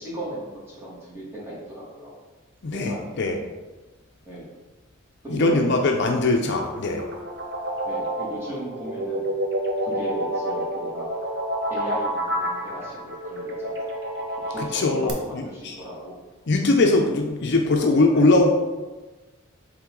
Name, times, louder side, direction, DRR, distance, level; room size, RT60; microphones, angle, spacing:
voice 1, 0.0-2.1 2.9-3.2 4.3-4.5 5.2-5.7 6.2-6.7 7.8-9.4 9.8-11.1 11.7-14.0 14.5-16.2 18.1-18.3, equal, 10° right, -7 dB, 2.0 m, -36 dB
voice 2, 2.6-3.4 5.3-7.0 14.7-15.8 16.5-18.5, left 2 dB, 55° left, 3 dB, 0.6 m, -21 dB
sound 1, 6.6-15.1, right 1 dB, 50° right, 0.9 m, -28 dB
7.5 x 3.6 x 3.8 m, 1.2 s
head